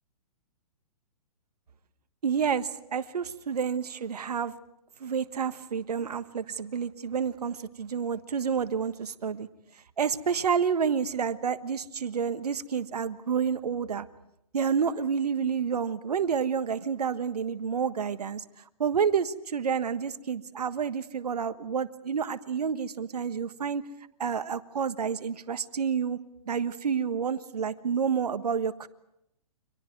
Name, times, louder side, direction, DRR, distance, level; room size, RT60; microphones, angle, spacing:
voice 1, 2.2-4.5 5.0-9.5 10.0-14.1 14.5-18.4 18.8-23.9 24.2-26.2 26.5-28.9, right 6 dB, 80° right, 12 dB, 1.4 m, -29 dB
30.0 x 25.5 x 4.6 m, 0.80 s
hypercardioid pair, 135°, 20 cm